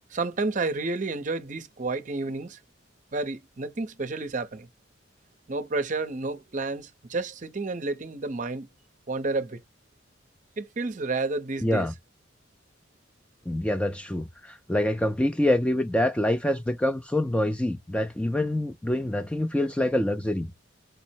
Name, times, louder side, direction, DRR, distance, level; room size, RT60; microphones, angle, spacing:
voice 1, 0.1-2.6 3.1-4.7 5.5-8.7 9.1-9.6 10.6-11.9, right 3 dB, 40° right, 0.6 m, -30 dB
voice 2, 11.6-11.9 13.5-20.5, left 1 dB, 5° left, 0.3 m, -26 dB
5.1 x 2.0 x 4.2 m
head